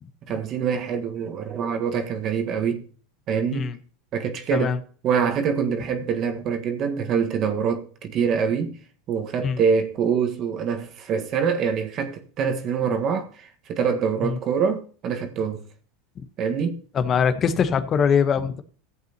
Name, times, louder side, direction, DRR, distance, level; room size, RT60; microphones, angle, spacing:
voice 1, 0.3-2.8 3.3-3.7 4.1-4.7 5.0-8.7 9.1-15.6 16.4-16.8, right 6 dB, 40° right, 1.6 m, -25 dB
voice 2, 16.9-18.6, left 6 dB, 35° left, 1.1 m, -22 dB
15.0 x 8.1 x 3.0 m
supercardioid pair, 110°, 0 cm